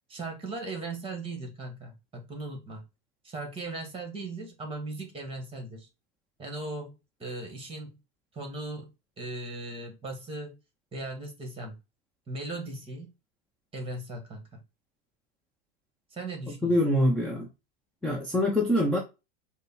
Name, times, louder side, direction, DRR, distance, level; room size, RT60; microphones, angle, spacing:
voice 1, 0.1-2.8 3.2-5.9 6.4-6.9 7.2-8.0 8.3-8.9 9.2-10.6 10.9-11.8 12.3-13.1 13.7-14.6 16.1-16.7, right 2 dB, 15° right, 1.9 m, -38 dB
voice 2, 16.6-17.5 18.0-19.0, left 1 dB, 5° left, 0.9 m, -24 dB
4.9 x 2.4 x 4.4 m
supercardioid pair, 120°, 31 cm